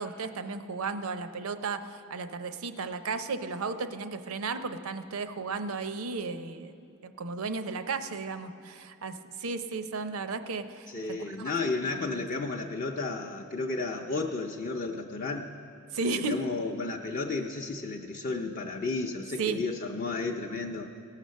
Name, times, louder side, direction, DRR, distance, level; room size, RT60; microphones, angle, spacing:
voice 1, 0.0-6.7 7.0-10.9 11.4-11.5 11.9-12.2 15.9-16.5 19.4-19.6, right 4 dB, 85° right, 10 dB, 0.6 m, -34 dB
voice 2, 10.9-15.5 16.1-20.9, left 3 dB, 40° left, 0 dB, 0.5 m, -33 dB
18.0 x 6.6 x 6.4 m, 2.6 s
head